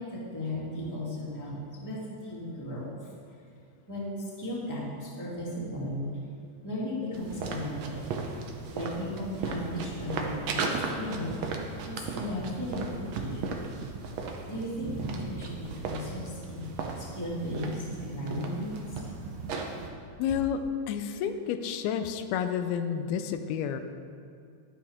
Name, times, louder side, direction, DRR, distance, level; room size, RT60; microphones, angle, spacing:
voice 1, 0.0-2.9 3.9-6.1 6.6-8.0 8.7-13.6 14.5-19.0, left 1 dB, 5° left, -7 dB, 2.1 m, -36 dB
sound 1, 7.1-19.9, right 4 dB, 75° right, 1.5 m, -36 dB
voice 2, 20.2-23.8, left 8 dB, 90° left, 8 dB, 2.6 m, -30 dB
12.5 x 11.0 x 3.7 m, 2.4 s
omnidirectional pair, 4.3 m